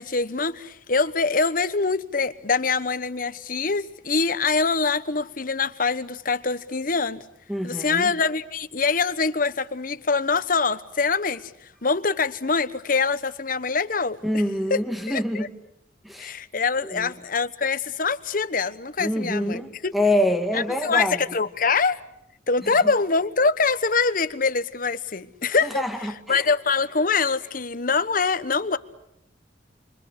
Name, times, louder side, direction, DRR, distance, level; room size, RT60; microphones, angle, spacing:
voice 1, 0.0-7.2 7.6-14.2 14.7-14.8 15.1-15.5 16.2-19.9 20.5-22.0 22.5-28.8, left 4 dB, 50° left, 1.2 m, -24 dB
voice 2, 7.5-8.1 14.2-15.5 16.0-16.3 16.8-17.1 19.0-21.2 22.6-22.9 25.6-26.4, left 1 dB, ahead, 1.8 m, -26 dB
30.0 x 24.0 x 8.3 m
head